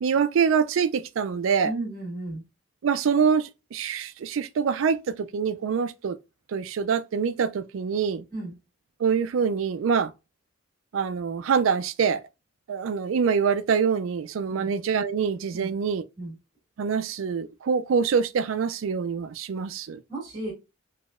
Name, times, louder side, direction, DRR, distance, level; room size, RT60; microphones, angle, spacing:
voice 1, 0.0-1.7 2.8-6.2 6.5-8.2 9.0-10.1 10.9-12.2 12.7-16.0 16.8-20.0, right 6 dB, 75° right, 0.4 m, -25 dB
voice 2, 1.6-2.4 8.3-8.6 14.5-14.7 15.5-15.7 16.2-16.4 20.1-20.5, right 2 dB, 20° right, 1.7 m, -34 dB
3.8 x 2.8 x 2.4 m
head